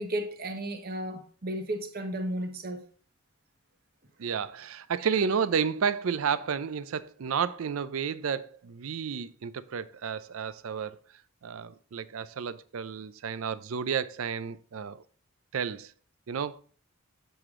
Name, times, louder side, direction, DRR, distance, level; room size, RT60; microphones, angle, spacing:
voice 1, 0.0-2.8, right 1 dB, 45° right, 1.0 m, -34 dB
voice 2, 4.2-11.0 11.4-15.0 15.5-15.9 16.3-16.6, right 6 dB, 75° right, 0.5 m, -31 dB
7.8 x 4.9 x 3.6 m
head